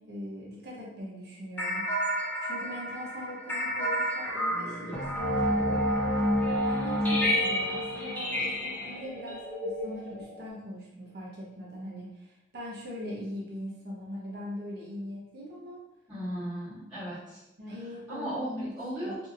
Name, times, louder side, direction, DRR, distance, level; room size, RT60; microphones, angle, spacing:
voice 1, 0.0-1.9 2.4-6.3 6.6-15.8 17.6-18.7 19.0-19.2, equal, 55° right, -4 dB, 0.8 m, -41 dB
sound 1, 1.6-10.5, equal, 10° left, 0.5 m, -29 dB
voice 2, 16.1-17.4 18.1-19.2, equal, 20° right, -16 dB, 1.4 m, -35 dB
2.7 x 2.7 x 2.5 m, 0.92 s
head